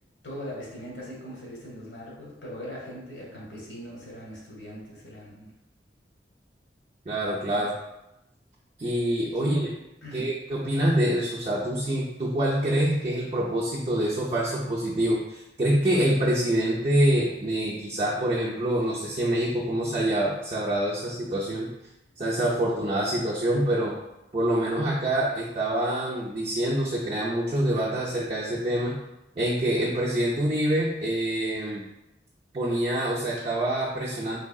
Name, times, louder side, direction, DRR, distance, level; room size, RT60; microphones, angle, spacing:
voice 1, 0.2-5.5 9.4-9.6 10.0-10.2, equal, 80° left, -4 dB, 1.3 m, -40 dB
voice 2, 7.1-7.7 8.8-9.7 10.1-21.7 22.2-23.9 24.3-29.0 29.4-31.8 32.5-34.4, right 1 dB, 35° right, -6 dB, 0.4 m, -26 dB
3.6 x 3.3 x 2.3 m, 0.91 s
head